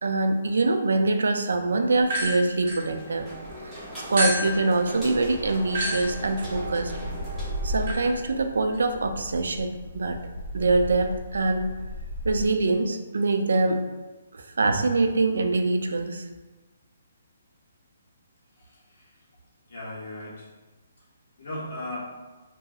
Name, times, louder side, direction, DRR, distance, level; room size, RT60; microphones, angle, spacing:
voice 1, 0.0-3.3 4.1-6.9 7.6-10.2 10.5-11.6 12.2-13.8 14.3-16.2, right 3 dB, 85° right, 6 dB, 0.3 m, -24 dB
sound 1, 2.0-3.5 4.2-12.4, equal, 45° right, 1.3 m, -33 dB
sound 2, 2.8-8.3, right 1 dB, 5° right, 0.8 m, -40 dB
voice 2, 18.6-19.2 19.7-20.5 21.4-22.1, left 1 dB, 55° left, -6 dB, 1.2 m, -37 dB
2.8 x 2.6 x 2.3 m, 1.2 s
hypercardioid pair, 165°, 0 cm